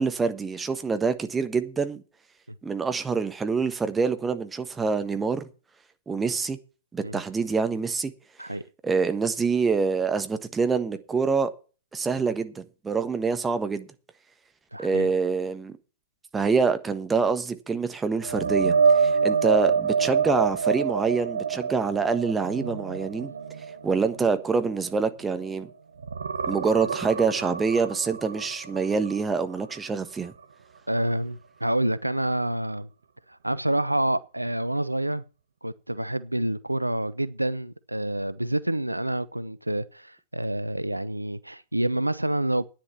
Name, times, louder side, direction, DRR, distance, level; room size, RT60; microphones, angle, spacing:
voice 1, 0.0-2.0 2.6-5.4 6.1-6.6 6.9-8.1 8.8-11.5 11.9-13.9 14.8-15.7 16.3-23.3 23.8-25.7 26.5-30.3, right 4 dB, 10° right, 1.3 m, -26 dB
voice 2, 14.7-15.1 30.9-32.9 33.3-35.2 35.6-42.6, right 1 dB, 85° right, 0.6 m, -28 dB
sound 1, 18.2-25.6 26.0-29.8 30.2-30.4 33.8-33.9, right 5 dB, 65° right, 1.2 m, -27 dB
10.5 x 9.9 x 5.8 m
figure-of-eight pair, 110°, 0 cm